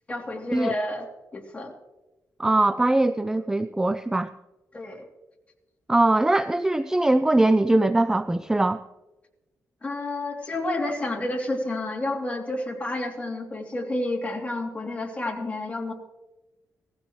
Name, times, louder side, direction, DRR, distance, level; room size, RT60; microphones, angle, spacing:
voice 1, 0.1-1.1 1.3-1.7 4.7-5.0 9.8-15.9, left 2 dB, 20° left, 0 dB, 2.9 m, -30 dB
voice 2, 2.4-4.3 5.9-8.8, right 2 dB, 10° right, 12 dB, 0.4 m, -21 dB
18.0 x 15.5 x 3.1 m, 1.1 s
cardioid pair, 115°, 6 cm